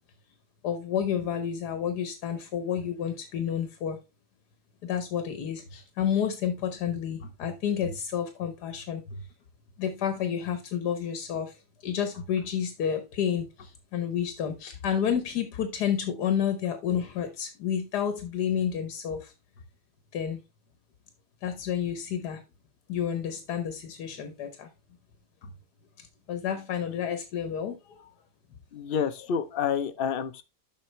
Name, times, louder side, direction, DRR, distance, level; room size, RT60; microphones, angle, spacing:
voice 1, 0.6-4.0 4.8-9.2 9.8-11.6 11.8-19.3 20.1-20.4 21.4-22.4 22.9-24.7 25.4-25.5 26.3-28.1, left 8 dB, 80° left, 1.5 m, -30 dB
voice 2, 28.7-30.4, left 7 dB, 50° left, 0.6 m, -29 dB
7.3 x 5.6 x 3.2 m
omnidirectional pair, 1.7 m